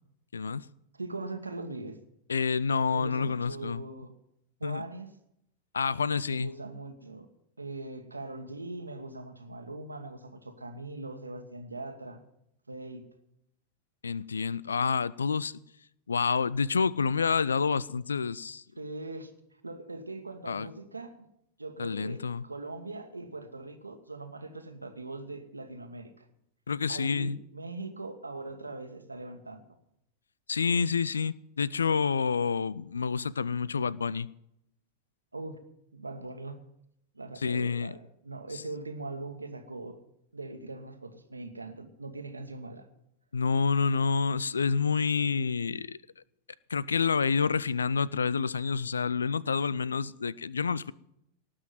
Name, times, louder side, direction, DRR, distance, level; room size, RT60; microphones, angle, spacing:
voice 1, 0.3-0.7 2.3-3.8 4.6-4.9 5.7-6.5 14.0-15.6 16.1-18.6 20.5-20.7 21.8-22.4 26.7-27.4 30.5-34.3 37.4-37.9 38.5-38.6 43.3-46.0 46.7-50.9, left 5 dB, 75° left, 0.4 m, -28 dB
voice 2, 0.9-2.0 2.9-4.1 4.6-5.1 6.3-7.3 7.6-12.2 12.7-13.0 18.8-19.3 19.6-21.3 21.6-26.3 26.9-29.6 35.3-35.6 35.9-36.6 37.1-40.0 40.3-42.9, right 2 dB, 80° right, 1.5 m, -41 dB
18.5 x 6.3 x 9.3 m
figure-of-eight pair, 90°, 0 cm